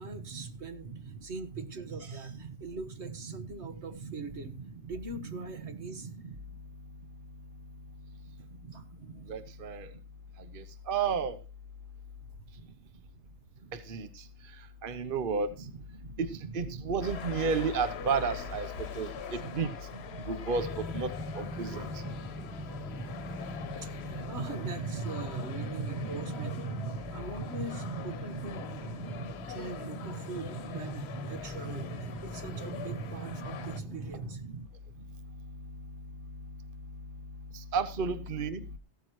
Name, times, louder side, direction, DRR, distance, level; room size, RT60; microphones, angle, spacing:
voice 1, 0.0-4.6 4.9-6.1 8.7-8.8 23.8-26.6 27.1-28.6 29.5-34.4, right 3 dB, 80° right, 8 dB, 1.7 m, -43 dB
voice 2, 9.3-9.9 10.9-11.4 13.7-14.1 14.8-15.5 16.2-16.3 16.5-18.7 19.0-19.7 20.3-20.7 20.9-21.1 21.4-21.9 24.3-24.5 25.4-27.0 27.6-28.0 28.3-28.4 28.9-29.3 29.8-30.0 32.8-32.9 33.6-33.7 37.7-38.6, right 5 dB, 55° right, 11 dB, 1.0 m, -32 dB
sound 1, 17.0-33.8, left 8 dB, 70° left, 1.0 m, -44 dB
sound 2, 20.5-34.4, equal, ahead, 1.2 m, -43 dB
15.0 x 12.0 x 3.1 m, 0.29 s
omnidirectional pair, 1.1 m